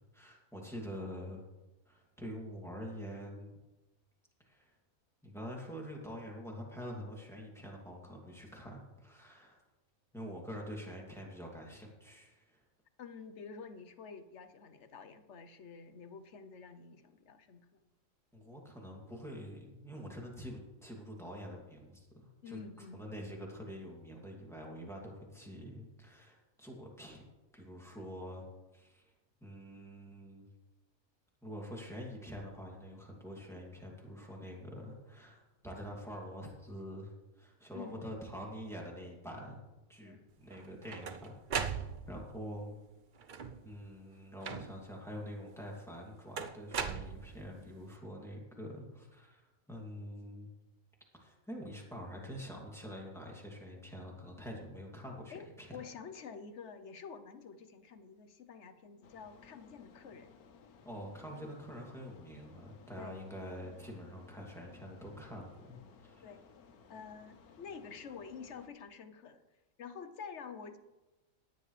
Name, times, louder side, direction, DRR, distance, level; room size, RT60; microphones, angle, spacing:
voice 1, 0.0-1.4 1.9-3.5 4.4-4.7 5.2-9.6 10.1-12.6 18.3-27.2 27.5-28.4 28.7-29.1 29.4-30.4 31.4-39.6 39.9-41.7 42.1-42.8 43.6-50.5 51.1-55.8 60.8-66.2, equal, ahead, -2 dB, 2.5 m, -46 dB
voice 2, 13.0-17.7 22.4-23.0 37.7-38.0 40.0-40.2 55.3-60.4 63.0-63.2 66.2-66.4 66.9-69.4 69.8-70.8, left 5 dB, 55° left, 10 dB, 1.1 m, -48 dB
sound 1, 40.5-42.3 43.2-43.7 44.4-45.0 46.4-47.6, right 6 dB, 50° right, 0.6 m, -39 dB
sound 2, 59.0-68.7, left 5 dB, 90° left, 1.4 m, -59 dB
17.5 x 11.0 x 3.3 m, 1.1 s
omnidirectional pair, 1.5 m